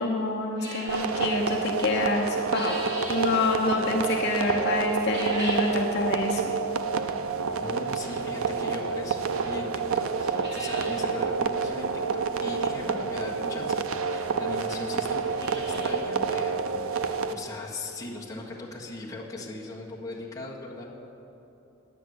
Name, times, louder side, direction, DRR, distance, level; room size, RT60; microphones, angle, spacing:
voice 1, 0.0-2.8 3.1-6.5, left 2 dB, 50° left, -2 dB, 1.2 m, -27 dB
sound 1, 0.6-1.2 2.1-3.3 5.0-5.8 6.2-6.3 7.1-7.2 8.9-9.0 9.4-9.5 9.8-9.9 10.2-11.0 11.3-11.4 11.6-11.7 13.3-13.4 14.2-14.3 14.4-14.5 15.1-16.1 16.4-16.5 17.0-17.1 17.5-17.6 19.3-19.4 19.6-19.7 20.1-20.2, right 1 dB, 50° right, 3.1 m, -39 dB
sound 2, 0.9-17.3, right 5 dB, 75° right, 0.5 m, -28 dB
voice 2, 7.6-20.9, left 2 dB, 15° left, -6 dB, 1.5 m, -39 dB
10.0 x 8.3 x 8.0 m, 3.0 s
head